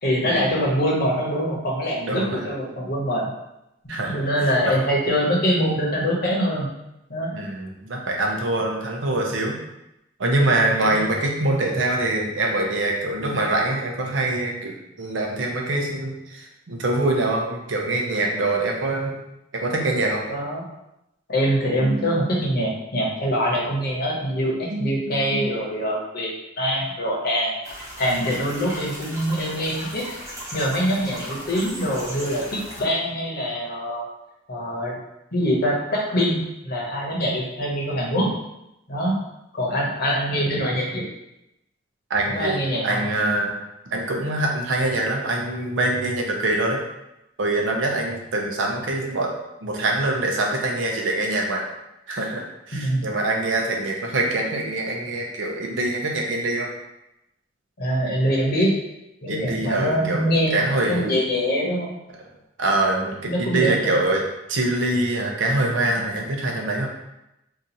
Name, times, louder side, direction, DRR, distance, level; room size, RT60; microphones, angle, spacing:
voice 1, 0.0-3.3 4.1-6.7 7.1-7.3 10.7-11.0 20.3-20.6 21.3-26.3 26.6-27.5 28.0-30.0 30.5-34.1 34.5-35.0 35.3-38.3 38.9-39.1 39.5-41.1 42.4-43.0 52.7-53.1 57.8-58.7 59.2-61.9 63.3-63.9 65.7-66.0, equal, 55° left, -3 dB, 0.9 m, -24 dB
voice 2, 2.1-2.4 3.9-4.3 7.3-9.6 10.2-19.1 19.5-20.2 21.8-22.3 24.7-25.5 42.1-43.5 43.9-46.8 47.4-49.3 49.6-51.6 52.1-56.7 59.3-60.2 60.5-61.1 62.6-64.2 64.5-66.9, right 2 dB, 90° right, 1 dB, 0.7 m, -24 dB
sound 1, 27.6-32.8, equal, 20° right, 1.0 m, -37 dB
2.8 x 2.5 x 3.9 m, 0.89 s
head